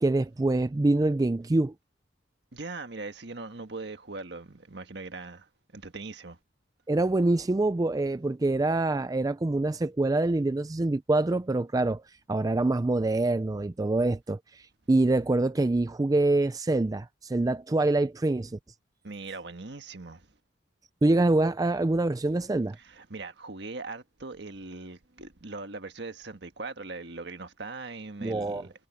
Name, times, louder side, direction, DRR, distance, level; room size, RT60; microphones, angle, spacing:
voice 1, 0.0-1.7 6.9-18.6 21.0-22.8 28.2-28.7, right 2 dB, 20° right, 0.4 m, -25 dB
voice 2, 2.5-6.4 19.0-20.3 22.8-28.7, right 3 dB, 65° right, 1.5 m, -40 dB
head